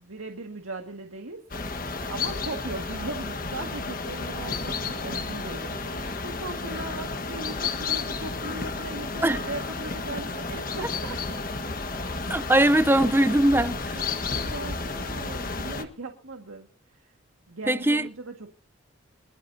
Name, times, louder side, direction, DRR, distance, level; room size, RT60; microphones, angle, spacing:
voice 1, 0.0-1.4 2.1-11.4 11.9-12.3 13.9-16.7 16.9-17.1 17.5-18.5, right 2 dB, 85° right, 1.8 m, -39 dB
sound 1, 1.5-15.8, left 3 dB, 40° left, 1.5 m, -32 dB
voice 2, 12.3-14.0 17.7-18.1, right 1 dB, 10° right, 0.6 m, -21 dB
24.5 x 14.0 x 2.7 m
head